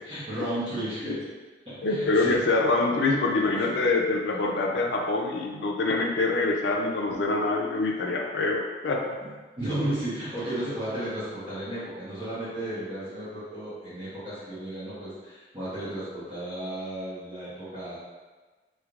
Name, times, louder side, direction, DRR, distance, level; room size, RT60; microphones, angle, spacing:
voice 1, 0.0-1.2 1.7-2.3 9.2-9.3 9.6-18.0, right 1 dB, 30° right, -14 dB, 1.0 m, -33 dB
voice 2, 1.8-9.2, left 3 dB, 80° left, 1 dB, 0.5 m, -25 dB
3.2 x 3.2 x 2.4 m, 1.3 s
head